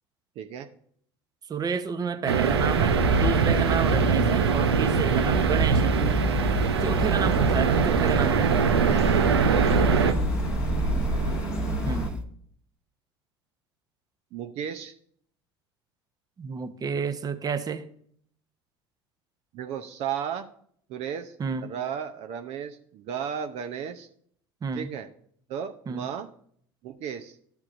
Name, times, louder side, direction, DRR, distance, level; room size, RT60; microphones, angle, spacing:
voice 1, 0.4-0.7 7.6-7.9 11.1-11.8 14.3-14.9 19.5-20.4 20.9-21.4 21.6-24.1 24.7-25.1 25.5-26.3 26.8-27.4, right 8 dB, 55° right, 7 dB, 0.8 m, -34 dB
voice 2, 1.5-5.9 6.6-8.6 11.8-12.1 16.4-17.8 21.4-21.7 24.6-24.9 25.9-26.1, right 6 dB, 30° right, 10 dB, 1.0 m, -30 dB
sound 1, 2.3-10.1, right 6 dB, 85° right, 0.8 m, -23 dB
sound 2, 2.4-12.2, right 2 dB, 5° right, 1.4 m, -28 dB
sound 3, 6.8-12.1, left 6 dB, 85° left, 0.9 m, -36 dB
13.0 x 7.2 x 2.6 m, 0.62 s
hypercardioid pair, 75°, 13 cm